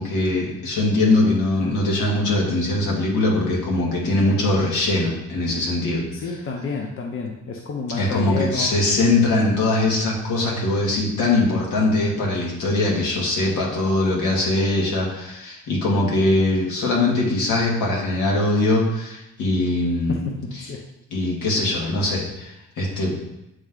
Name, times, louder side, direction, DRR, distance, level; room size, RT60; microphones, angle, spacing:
voice 1, 0.0-6.1 8.0-20.2 20.6-20.7 21.1-23.2, left 2 dB, 80° left, -3 dB, 2.0 m, -21 dB
voice 2, 6.1-8.7 20.1-20.8, left 4 dB, 45° left, 1 dB, 0.8 m, -29 dB
8.8 x 3.2 x 3.8 m, 0.89 s
cardioid pair, 90°, 30 cm